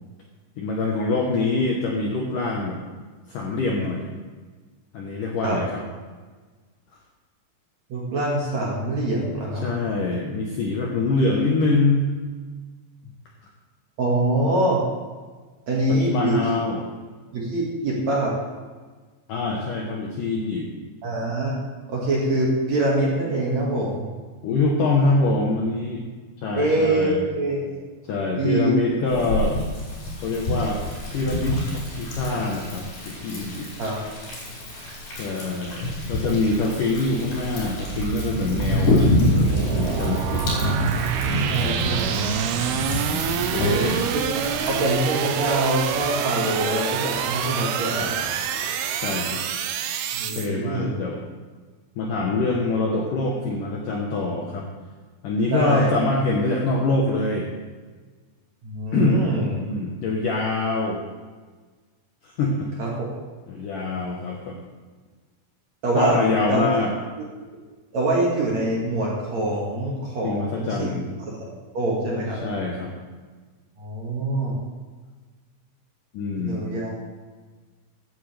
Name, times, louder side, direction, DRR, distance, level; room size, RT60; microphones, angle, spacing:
voice 1, 0.6-2.8 3.3-4.1 4.9-5.8 9.6-12.1 15.9-16.8 19.3-20.7 24.4-26.0 26.4-27.2 28.1-29.7 30.2-30.8 31.1-33.7 35.1-39.1 39.7-40.5 43.1-43.2 43.5-44.0 48.0-48.1 49.0-49.4 50.4-51.2 52.0-54.7 55.2-57.5 58.9-59.3 59.6-61.0 62.2-62.7 63.5-64.6 65.9-66.9 70.2-71.1 72.4-72.9 76.1-76.7, left 3 dB, 70° left, -1 dB, 2.0 m, -24 dB
voice 2, 7.9-9.6 14.0-14.8 15.7-16.4 17.3-18.3 21.0-21.5 21.9-24.1 26.5-27.8 28.4-29.0 33.8-34.0 41.5-42.3 43.7-43.8 44.1-48.1 50.1-51.0 55.5-55.9 58.6-59.5 62.8-63.1 65.8-66.2 66.5-66.6 67.9-70.9 71.7-72.4 73.8-74.6 76.4-76.9, right 2 dB, 50° right, -4 dB, 2.5 m, -24 dB
Thunder, 29.1-44.9, left 1 dB, 50° left, 6.4 m, -27 dB
sound 1, 37.2-50.5, right 8 dB, 80° right, 2.4 m, -27 dB
15.5 x 11.5 x 3.4 m, 1.4 s
omnidirectional pair, 5.3 m